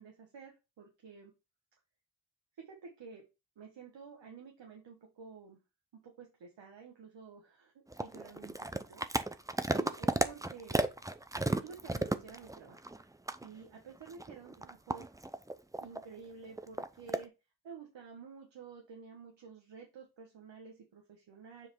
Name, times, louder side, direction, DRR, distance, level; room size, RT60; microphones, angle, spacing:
voice 1, 0.0-1.3 2.6-3.2 3.6-5.6 5.9-7.7 8.0-9.0 9.7-10.8 11.5-12.8 13.4-15.1 15.8-17.3 17.6-21.7, right 5 dB, 80° right, 1 dB, 1.4 m, -51 dB
sound 1, 7.9-13.0 13.3-13.5 14.0-16.0 16.6-17.2, right 2 dB, 10° right, 0.5 m, -34 dB
7.3 x 3.3 x 4.6 m, 0.27 s
cardioid pair, 60°, 43 cm